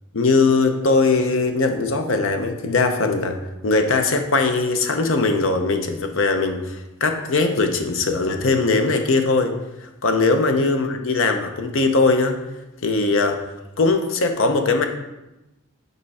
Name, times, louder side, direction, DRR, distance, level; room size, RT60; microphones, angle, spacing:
voice 1, 0.1-3.4 3.6-9.5 9.8-12.4 12.8-13.4 13.8-14.9, left 3 dB, 65° left, 6 dB, 0.7 m, -20 dB
5.4 x 4.5 x 4.1 m, 0.97 s
head